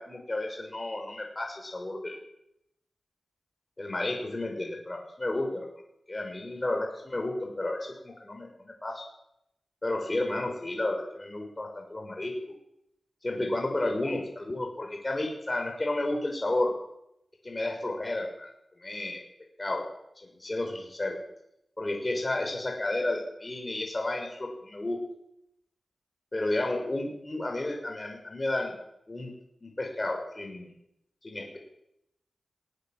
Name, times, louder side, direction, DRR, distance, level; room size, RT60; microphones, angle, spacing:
voice 1, 0.0-2.2 3.8-5.7 6.1-9.0 9.8-12.3 13.2-16.7 17.4-18.5 18.8-19.2 19.6-19.9 20.2-21.2 21.8-25.0 26.3-28.7 29.1-29.3 29.6-30.7 31.2-31.6, left 2 dB, 30° left, 2 dB, 6.1 m, -32 dB
19.5 x 18.5 x 7.6 m, 0.81 s
cardioid pair, 55°, 0 cm